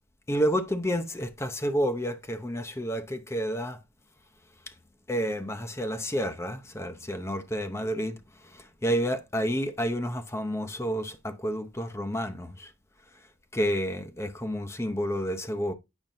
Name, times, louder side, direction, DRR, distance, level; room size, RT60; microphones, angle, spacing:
voice 1, 0.3-3.8 5.1-8.2 8.5-12.7 13.5-15.7, equal, 15° left, 0.6 m, -30 dB
8.9 x 5.2 x 2.6 m
head